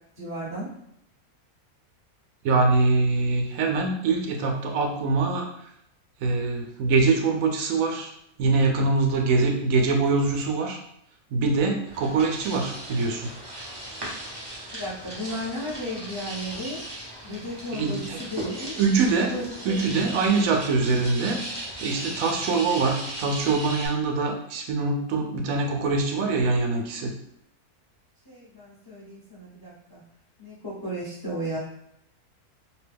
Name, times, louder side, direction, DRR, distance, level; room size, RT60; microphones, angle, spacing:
voice 1, 0.2-0.7 14.7-16.8 17.2-18.8 19.3-19.8 28.3-30.0 30.4-31.6, equal, 20° left, -7 dB, 0.6 m, -34 dB
voice 2, 2.4-5.5 6.2-8.1 8.4-10.8 11.3-13.3 17.7-18.2 18.8-19.3 19.6-21.4 21.8-27.1, right 3 dB, 70° right, 2 dB, 1.0 m, -23 dB
sound 1, 11.9-23.9, right 1 dB, 30° right, 0.4 m, -37 dB
2.8 x 2.2 x 3.4 m, 0.79 s
omnidirectional pair, 1.6 m